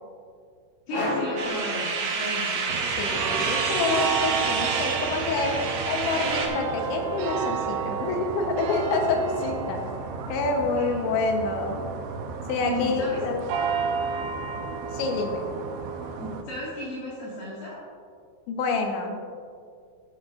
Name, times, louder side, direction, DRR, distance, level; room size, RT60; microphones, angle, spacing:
voice 1, 0.9-2.8 10.2-10.9 12.6-13.2 16.2-17.8, equal, 65° left, -9 dB, 3.7 m, -35 dB
sound 1, 0.9-2.7, left 1 dB, 50° left, 2.5 m, -31 dB
sound 2, 1.4-6.5, right 5 dB, 65° right, 2.1 m, -28 dB
Carillon Jouster Toer, 2.7-16.4, right 6 dB, 85° right, 3.0 m, -32 dB
voice 2, 2.9-5.5 5.9-9.8 10.3-11.8 12.5-13.4 14.9-15.4 18.5-19.3, left 3 dB, 90° left, 2 dB, 3.4 m, -27 dB
14.0 x 9.4 x 2.5 m, 2.2 s
omnidirectional pair, 5.1 m